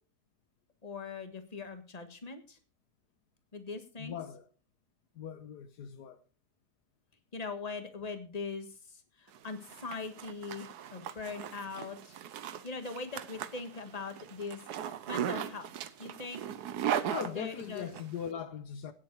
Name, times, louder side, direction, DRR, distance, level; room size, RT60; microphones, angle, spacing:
voice 1, 0.8-2.6 3.5-4.2 7.3-12.2 12.6-15.7 16.0-16.5 17.3-17.9, left 4 dB, 25° left, 1.7 m, -41 dB
voice 2, 4.0-4.5 5.1-6.2 17.1-18.9, left 8 dB, 75° left, 1.5 m, -40 dB
Zipper (clothing), 9.3-18.0, right 9 dB, 75° right, 1.4 m, -38 dB
18.0 x 7.6 x 4.8 m
omnidirectional pair, 1.7 m